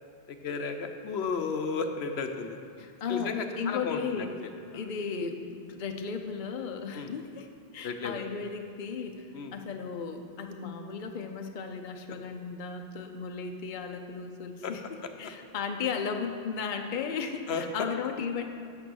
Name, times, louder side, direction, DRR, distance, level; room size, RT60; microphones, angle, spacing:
voice 1, 0.3-2.6 3.1-4.3 6.9-7.1 7.8-8.2 9.3-9.5 14.6-14.7 17.5-17.6, left 5 dB, 80° left, 6 dB, 1.0 m, -33 dB
voice 2, 2.8-4.3 4.7-18.4, left 6 dB, 55° left, 4 dB, 0.8 m, -35 dB
8.4 x 7.5 x 6.3 m, 2.5 s
omnidirectional pair, 1.0 m